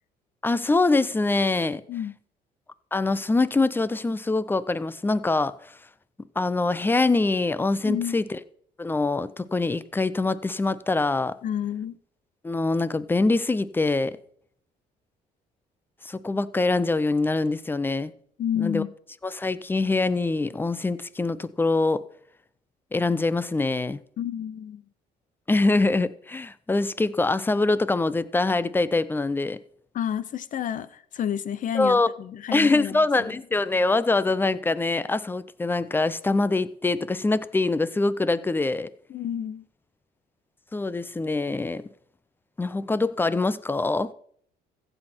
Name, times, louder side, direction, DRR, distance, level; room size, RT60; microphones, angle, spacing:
voice 1, 0.4-1.8 2.9-5.8 6.4-8.4 8.8-11.3 12.4-14.2 16.0-18.1 18.6-18.8 19.2-22.0 22.9-24.0 25.5-29.6 31.7-32.1 32.5-38.9 40.7-41.9 42.6-44.1, left 3 dB, 10° left, 0.5 m, -24 dB
voice 2, 7.8-8.2 11.4-12.0 18.4-18.9 24.2-24.8 29.9-33.4 39.1-39.6, left 9 dB, 50° left, 0.7 m, -30 dB
15.0 x 7.8 x 4.4 m
cardioid pair, 110°, 17 cm